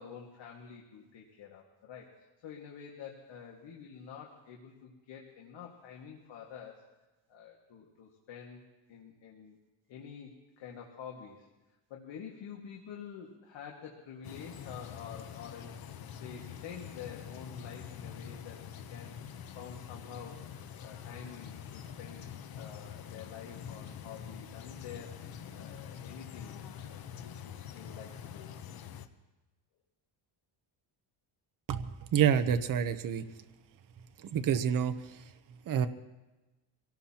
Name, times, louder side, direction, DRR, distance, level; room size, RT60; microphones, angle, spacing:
voice 1, 0.0-6.8 7.3-8.6 8.9-9.6 9.9-11.5 11.9-15.8 16.1-18.6 18.9-19.2 19.5-22.3 22.6-26.6 26.9-28.5, left 7 dB, 65° left, -1 dB, 1.9 m, -48 dB
sound 1, 14.2-29.1, left 8 dB, 50° left, 0.9 m, -45 dB
voice 2, 32.1-33.2 34.3-34.9 35.7-35.9, right 8 dB, 45° right, 8 dB, 0.8 m, -27 dB
25.0 x 17.5 x 2.9 m, 1.1 s
cardioid pair, 150°, 48 cm